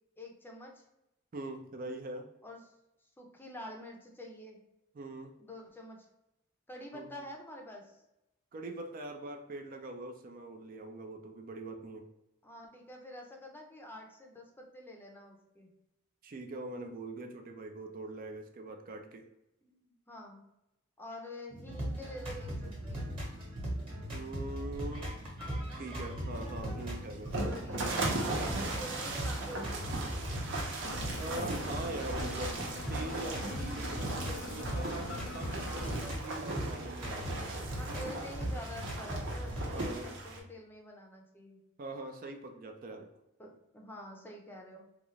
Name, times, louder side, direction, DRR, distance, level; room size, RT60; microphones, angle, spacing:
voice 1, 0.2-0.8 2.4-2.6 3.2-4.6 5.4-6.1 6.7-8.0 12.4-15.7 19.0-19.1 19.6-20.4 21.0-23.1 27.5-30.5 37.8-41.6 43.4-44.8, left 1 dB, 10° left, 0 dB, 0.5 m, -47 dB
voice 2, 1.3-2.3 5.0-5.3 6.9-7.3 8.5-12.1 16.2-19.3 24.1-25.1 25.7-27.5 31.2-32.6 32.9-37.5 39.7-40.1 41.8-43.1, right 2 dB, 40° right, 5 dB, 0.4 m, -42 dB
sound 1, 21.5-40.0, equal, 25° right, 1.1 m, -39 dB
sound 2, 26.3-40.4, right 2 dB, 60° right, 0.8 m, -38 dB
sound 3, 30.8-36.1, left 4 dB, 75° left, 0.4 m, -46 dB
3.8 x 2.3 x 3.0 m, 0.89 s
head